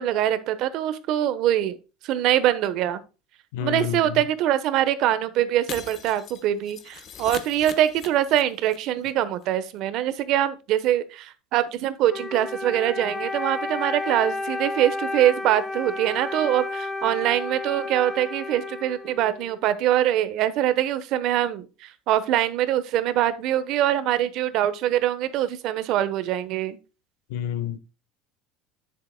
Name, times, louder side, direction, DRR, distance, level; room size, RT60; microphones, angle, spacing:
voice 1, 0.0-1.8 2.0-3.0 3.6-26.8, right 12 dB, 50° right, 1.0 m, -23 dB
voice 2, 3.5-4.2 27.3-27.8, left 9 dB, 85° left, 1.1 m, -29 dB
Shatter, 5.7-8.8 9.0-9.1 9.4-9.5, left 7 dB, 35° left, 1.1 m, -40 dB
Wind instrument woodwind instrument, 12.1-19.6, left 3 dB, 10° left, 1.2 m, -32 dB
9.5 x 7.6 x 2.2 m
cardioid pair, 160°, 0 cm